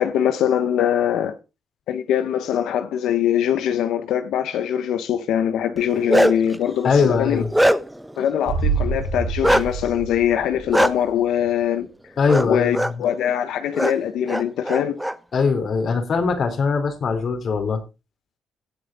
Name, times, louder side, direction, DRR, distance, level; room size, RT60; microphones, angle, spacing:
voice 1, 0.0-1.3 1.9-7.4 8.2-11.9 12.5-15.0, left 10 dB, 85° left, 1.2 m, -22 dB
Bark, 5.8-6.5 7.1-8.1 9.4-9.6 10.7-10.9 12.3-12.5 12.7-12.9 13.7-13.9 14.3-15.1, equal, 5° right, 1.0 m, -19 dB
voice 2, 6.8-7.5 12.2-13.0 15.3-17.8, left 5 dB, 60° left, 3.4 m, -21 dB
sound 1, 8.4-11.1 11.4-11.5, right 5 dB, 80° right, 4.9 m, -26 dB
16.5 x 6.6 x 4.1 m
supercardioid pair, 65°, 0 cm